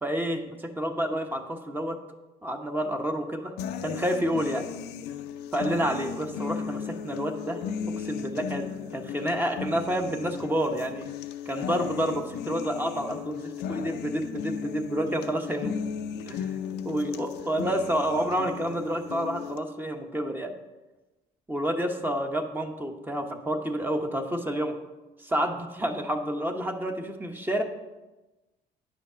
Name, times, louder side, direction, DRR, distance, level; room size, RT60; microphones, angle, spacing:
voice 1, 0.0-2.0 2.4-3.5 3.8-4.7 5.5-7.6 8.0-11.1 11.5-15.8 16.3-16.5 16.8-20.5 21.5-24.8 25.2-27.6, equal, 10° right, 4 dB, 1.0 m, -29 dB
sound 1, 3.6-19.6, left 7 dB, 85° left, 0.6 m, -36 dB
9.9 x 5.1 x 6.8 m, 1.1 s
cardioid pair, 110°, 17 cm